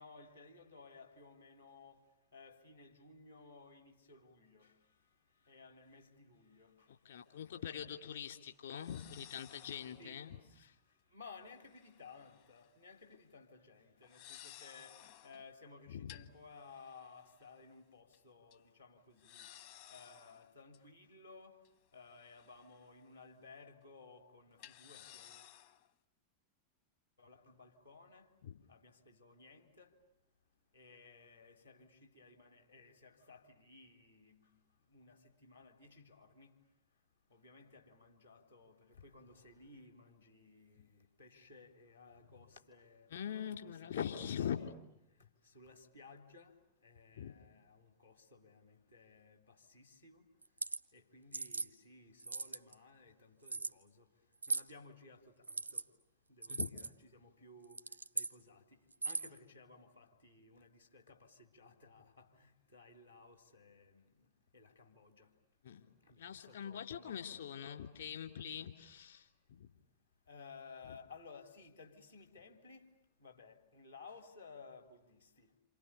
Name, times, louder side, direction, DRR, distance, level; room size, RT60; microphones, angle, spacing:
voice 1, 0.0-2.0 2.3-4.7 5.5-6.9 10.0-10.2 11.1-15.0 15.2-19.5 19.9-21.6 21.9-25.4 27.2-28.3 28.7-29.9 30.7-34.5 34.9-36.5 37.3-43.1 43.5-44.7 45.4-46.5 46.8-50.2 50.9-54.0 54.5-55.8 56.3-57.8 58.1-58.8 59.0-64.0 64.5-65.3 66.1-67.1 70.3-72.9 73.2-75.5, left 4 dB, 85° left, 3.3 m, -58 dB
voice 2, 6.9-10.3 10.6-10.7 15.9-16.2 28.4-28.6 43.1-44.6 47.1-47.4 56.5-56.7 65.6-65.9 66.2-69.7, left 9 dB, 65° left, 3.2 m, -43 dB
sound 1, 7.1-7.2 8.7-10.2 11.5-12.7 13.0-13.2 14.0-15.5 16.1-17.7 18.1-18.2 18.5-18.6 19.2-20.8 21.6-23.1 23.4-23.5 24.6-25.9, left 12 dB, 50° left, 1.1 m, -58 dB
sound 2, 50.4-50.8 51.3-51.7 52.2-52.7 53.5-53.7 54.4-54.7 55.4-55.8 56.4-56.9 57.6-58.3 58.9-59.4, right 4 dB, 85° right, 1.0 m, -39 dB
28.5 x 28.0 x 7.0 m
figure-of-eight pair, 90°, 0 cm